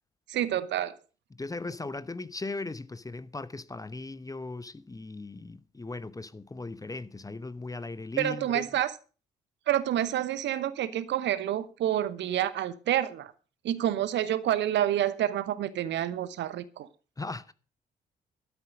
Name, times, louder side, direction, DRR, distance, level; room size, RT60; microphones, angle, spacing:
voice 1, 0.3-1.0 8.2-8.9 9.7-13.3 13.6-16.9, right 11 dB, 55° right, 1.0 m, -28 dB
voice 2, 1.3-8.8 17.2-17.5, left 3 dB, 15° left, 0.9 m, -38 dB
12.5 x 10.5 x 5.2 m
figure-of-eight pair, 45°, 21 cm